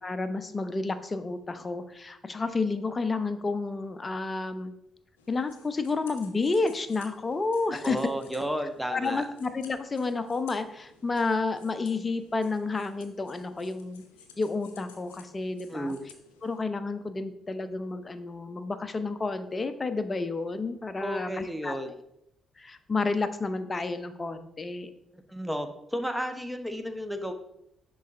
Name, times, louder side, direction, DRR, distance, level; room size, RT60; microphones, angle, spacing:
voice 1, 0.0-4.7 5.3-8.0 8.9-14.0 14.4-15.9 16.4-21.8 22.6-24.9, left 3 dB, 30° left, 11 dB, 0.6 m, -30 dB
sound 1, 5.2-16.6, left 6 dB, 80° left, 0.5 m, -55 dB
voice 2, 7.7-9.3 15.7-16.0 21.0-21.9 25.1-27.3, equal, 5° right, 7 dB, 0.9 m, -33 dB
10.5 x 3.9 x 2.5 m, 0.79 s
figure-of-eight pair, 40°, 0 cm